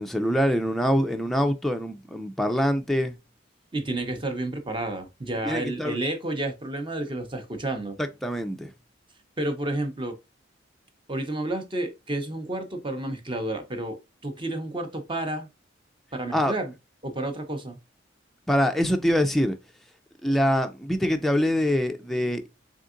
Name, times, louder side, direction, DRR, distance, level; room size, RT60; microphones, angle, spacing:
voice 1, 0.0-3.2 5.4-6.0 8.0-8.7 16.3-16.5 18.5-19.6 20.2-22.4, equal, ahead, 0.3 m, -24 dB
voice 2, 3.7-8.0 9.4-10.1 11.1-15.5 16.1-16.7 17.0-17.8, right 1 dB, 25° right, 0.7 m, -30 dB
3.9 x 3.6 x 2.5 m
head